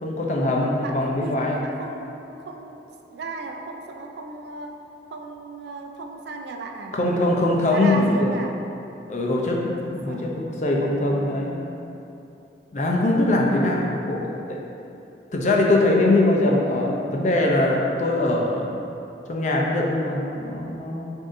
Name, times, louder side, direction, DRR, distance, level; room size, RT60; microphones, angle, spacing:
voice 1, 0.0-1.6 6.9-8.4 9.1-11.6 12.7-14.6 15.3-18.8 19.3-21.1, left 2 dB, 40° left, -1 dB, 0.5 m, -22 dB
voice 2, 0.8-2.8 3.1-4.8 5.1-7.0 7.7-8.6 9.8-10.3 10.6-11.5 13.6-14.3, right 3 dB, 70° right, 3 dB, 0.3 m, -36 dB
7.3 x 2.7 x 2.6 m, 2.8 s
head